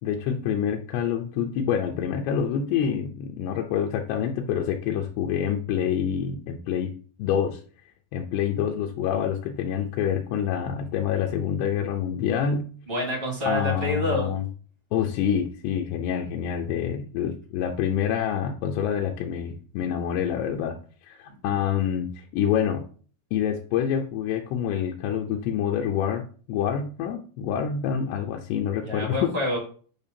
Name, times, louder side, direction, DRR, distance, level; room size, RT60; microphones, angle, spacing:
voice 1, 0.0-6.9 7.2-7.6 8.1-12.7 13.5-14.5 14.9-20.8 21.0-22.9 23.3-29.3, left 8 dB, 80° left, 1 dB, 2.7 m, -27 dB
voice 2, 12.9-14.3 21.3-21.6 28.8-29.6, left 1 dB, 55° right, -1 dB, 0.5 m, -28 dB
8.8 x 5.4 x 2.8 m, 0.41 s
omnidirectional pair, 4.8 m